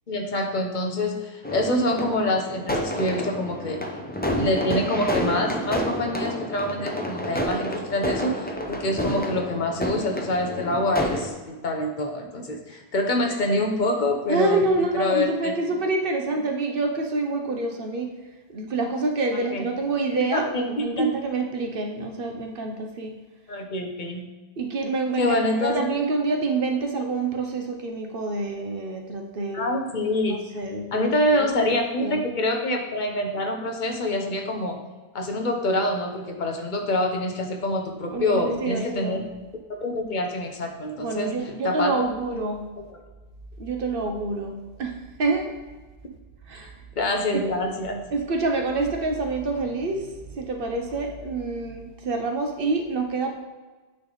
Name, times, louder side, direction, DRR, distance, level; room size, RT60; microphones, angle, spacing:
voice 1, 0.1-3.8 4.4-14.6 14.9-15.5 19.5-19.6 20.1-20.4 20.8-21.1 23.5-24.2 25.2-25.8 29.5-30.4 30.9-34.8 35.1-39.2 39.7-41.3 41.6-41.9 47.0-48.0, left 1 dB, 50° left, 3 dB, 1.0 m, -26 dB
sound 1, 1.4-11.3, equal, 15° left, 0.4 m, -29 dB
voice 2, 14.3-18.1 18.5-23.2 24.6-29.6 30.5-31.1 31.4-31.7 32.0-32.2 38.1-39.3 41.0-42.7 43.6-44.9 45.2-45.5 46.5-46.7 47.3-47.4 48.1-53.3, right 3 dB, 60° right, 3 dB, 0.9 m, -27 dB
8.9 x 3.4 x 3.9 m, 1.3 s
omnidirectional pair, 1.1 m